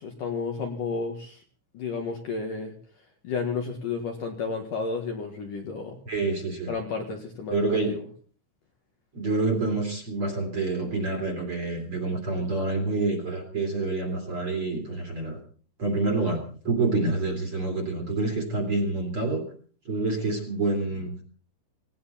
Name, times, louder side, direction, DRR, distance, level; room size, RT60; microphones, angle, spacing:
voice 1, 0.0-1.4 1.7-2.7 3.2-6.0 6.7-8.1, left 4 dB, 55° left, 2 dB, 2.7 m, -32 dB
voice 2, 6.1-6.7 7.5-8.0 9.1-15.4 15.8-19.4 19.8-21.1, right 3 dB, 35° right, 2 dB, 3.0 m, -27 dB
18.0 x 17.5 x 4.3 m, 0.43 s
omnidirectional pair, 5.5 m